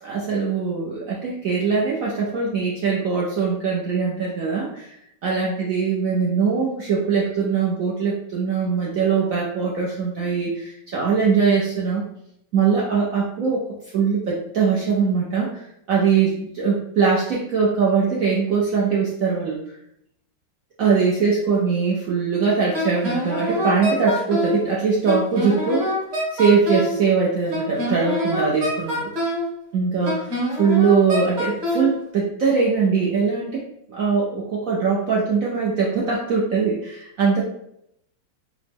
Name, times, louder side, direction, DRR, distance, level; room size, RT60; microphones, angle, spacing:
voice 1, 0.0-12.0 12.5-13.6 13.9-19.6 20.8-25.9 26.3-29.0 29.7-33.6 33.9-37.4, right 5 dB, 75° right, -4 dB, 0.7 m, -21 dB
Wind instrument woodwind instrument, 22.7-24.6 25.1-27.0 27.5-29.5 30.1-31.9, left 1 dB, 40° right, 1.1 m, -25 dB
4.8 x 2.1 x 3.4 m, 0.76 s
omnidirectional pair, 2.1 m